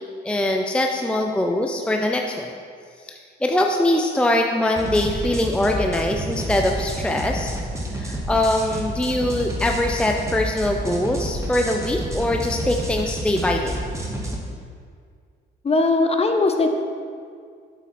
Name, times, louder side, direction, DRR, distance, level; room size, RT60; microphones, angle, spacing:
voice 1, 0.2-2.5 3.1-7.5 7.9-13.8, left 1 dB, 5° left, 2 dB, 0.5 m, -22 dB
sound 1, 4.8-14.3, right 1 dB, 15° right, 1.2 m, -29 dB
voice 2, 15.6-16.8, left 3 dB, 30° left, 5 dB, 0.8 m, -19 dB
7.6 x 6.1 x 4.3 m, 2.1 s
cardioid pair, 90°, 20 cm